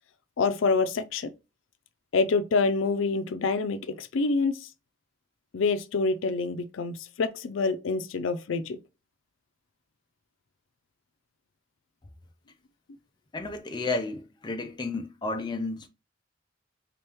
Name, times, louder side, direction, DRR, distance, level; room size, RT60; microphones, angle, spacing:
voice 1, 0.4-1.3 2.1-4.6 5.5-8.8, left 4 dB, 85° left, 0.5 m, -26 dB
voice 2, 13.3-15.9, left 3 dB, 25° left, 0.5 m, -32 dB
3.4 x 2.9 x 3.4 m
head